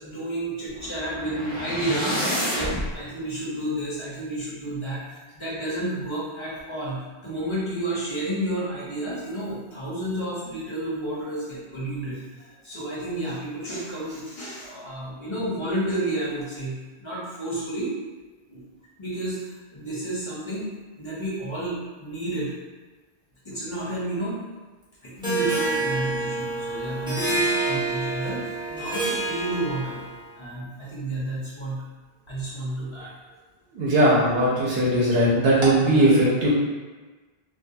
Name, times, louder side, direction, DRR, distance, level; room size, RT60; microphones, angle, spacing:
voice 1, 0.0-17.9 18.5-18.6 19.0-20.7 21.0-22.5 23.4-24.4 25.0-30.0 30.4-31.8 32.3-33.1, right 1 dB, 35° left, -8 dB, 0.6 m, -31 dB
sound 1, 0.7-2.9, equal, 35° right, 0.8 m, -29 dB
Harp, 25.2-30.2, right 2 dB, 5° right, 0.4 m, -27 dB
voice 2, 33.7-36.5, right 1 dB, 75° right, -7 dB, 0.8 m, -19 dB
2.4 x 2.2 x 2.6 m, 1.3 s
omnidirectional pair, 1.1 m